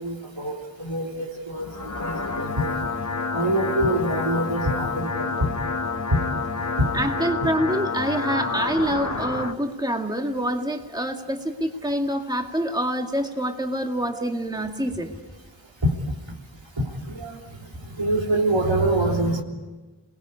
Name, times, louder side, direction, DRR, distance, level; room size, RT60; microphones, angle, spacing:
voice 1, 0.0-2.8 3.3-5.5 15.8-15.9 16.8-17.4 18.0-19.4, right 1 dB, 75° right, 0 dB, 3.5 m, -25 dB
sound 1, 1.6-9.5, left 4 dB, 40° left, 1.3 m, -29 dB
voice 2, 6.9-15.2, equal, 10° right, 3 dB, 2.0 m, -26 dB
28.0 x 20.5 x 8.4 m, 1.3 s
wide cardioid pair, 50°, 46 cm